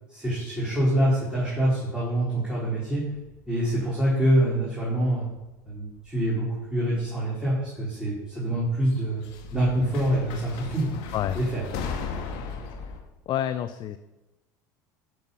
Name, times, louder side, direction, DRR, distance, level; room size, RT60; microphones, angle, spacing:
voice 1, 0.1-3.0 3.5-5.3 5.6-9.2 9.5-10.9 11.3-11.6, right 1 dB, 10° right, -7 dB, 4.4 m, -25 dB
sound 1, 3.0-5.1 5.4-6.1 7.1-7.2 8.9-13.0, left 5 dB, 65° left, 1.9 m, -37 dB
voice 2, 13.3-14.0, left 11 dB, 50° left, 11 dB, 0.6 m, -28 dB
11.0 x 7.0 x 5.5 m, 1.0 s
hypercardioid pair, 85°, 10 cm